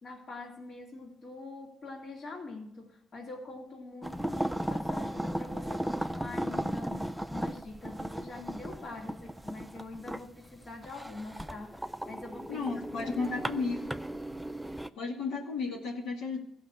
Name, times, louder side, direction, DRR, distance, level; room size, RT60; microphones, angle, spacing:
voice 1, 0.0-12.7 13.0-13.4, left 3 dB, 50° left, 1 dB, 2.6 m, -44 dB
sound 1, 4.0-14.9, right 1 dB, 5° right, 0.5 m, -36 dB
voice 2, 12.5-13.9 15.0-16.4, left 4 dB, 90° left, -2 dB, 2.4 m, -33 dB
15.5 x 5.8 x 6.4 m, 0.78 s
cardioid pair, 90°, 0 cm